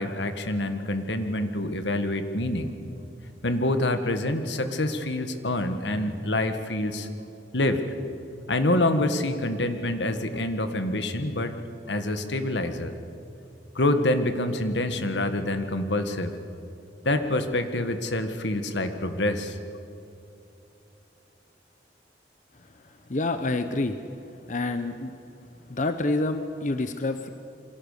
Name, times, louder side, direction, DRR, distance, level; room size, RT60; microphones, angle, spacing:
voice 1, 0.0-2.7 3.4-7.1 7.5-7.9 8.5-11.5 11.9-12.9 13.8-16.3 17.1-19.6, left 1 dB, 80° left, 8 dB, 1.8 m, -26 dB
voice 2, 22.8-24.0 24.5-25.1 25.7-27.3, left 2 dB, 45° left, 9 dB, 0.9 m, -28 dB
27.5 x 23.5 x 6.8 m, 2.7 s
head